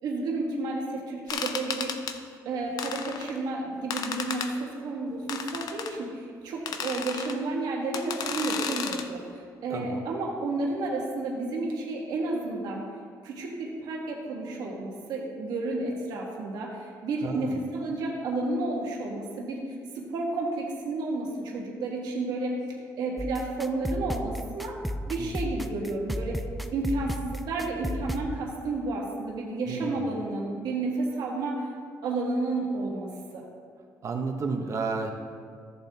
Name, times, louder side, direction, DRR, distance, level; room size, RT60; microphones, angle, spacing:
voice 1, 0.0-1.9 2.4-12.9 13.2-22.6 23.0-24.8 25.1-26.5 26.7-31.7 32.0-33.4, right 2 dB, 75° right, -2 dB, 1.5 m, -31 dB
sound 1, 1.3-2.2 2.8-3.4 3.9-4.5 5.3-5.9 6.7-7.4 7.9-9.1, left 6 dB, 65° left, 0.7 m, -33 dB
voice 2, 9.7-10.0 17.2-17.6 25.2-25.3 29.7-30.1 34.0-35.1, right 4 dB, 45° right, 3 dB, 1.1 m, -32 dB
sound 2, 23.2-28.3, equal, ahead, 0.4 m, -34 dB
14.0 x 7.3 x 2.9 m, 2.2 s
cardioid pair, 115°, 7 cm